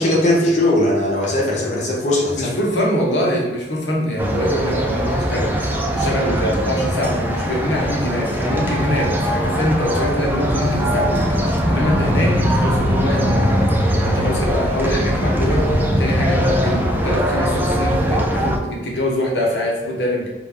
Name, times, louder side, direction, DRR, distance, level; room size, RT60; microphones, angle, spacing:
voice 1, 0.0-2.5, left 1 dB, 45° left, -4 dB, 0.9 m, -18 dB
voice 2, 2.3-20.3, equal, 85° left, -2 dB, 1.1 m, -24 dB
sound 1, 4.2-18.6, equal, 10° right, 0.5 m, -20 dB
5.0 x 2.6 x 3.6 m, 1.2 s
head